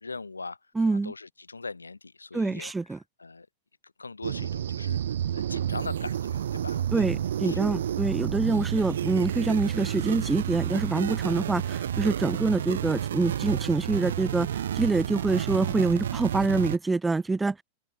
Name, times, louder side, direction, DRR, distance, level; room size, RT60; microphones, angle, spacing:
voice 1, 0.0-0.6 0.9-3.5 3.8-7.2 7.4-7.7 8.6-8.7, left 3 dB, 80° left, 2.1 m, -41 dB
voice 2, 0.7-1.1 2.3-3.0 6.9-17.6, right 3 dB, 10° right, 1.1 m, -26 dB
sound 1, 4.2-16.8, right 10 dB, 65° right, 0.5 m, -30 dB
open air
figure-of-eight pair, 90°, 0 cm